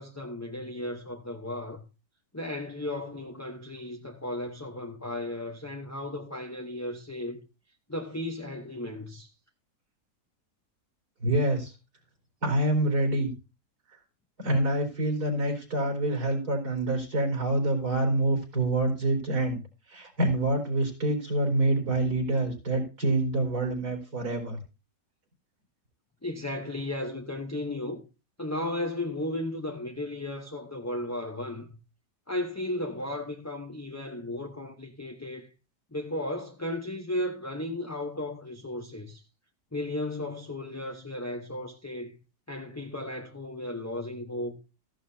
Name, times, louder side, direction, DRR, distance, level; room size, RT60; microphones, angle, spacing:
voice 1, 0.0-1.8 2.3-7.4 7.9-9.3 26.2-28.0 28.4-31.8 32.3-35.5 35.9-39.2 39.7-42.2 42.5-44.6, left 1 dB, 15° left, 0.7 m, -35 dB
voice 2, 11.2-11.7 12.4-13.3 14.4-19.6 19.9-24.6, right 1 dB, 65° right, 4.8 m, -26 dB
14.5 x 11.5 x 2.8 m
omnidirectional pair, 1.8 m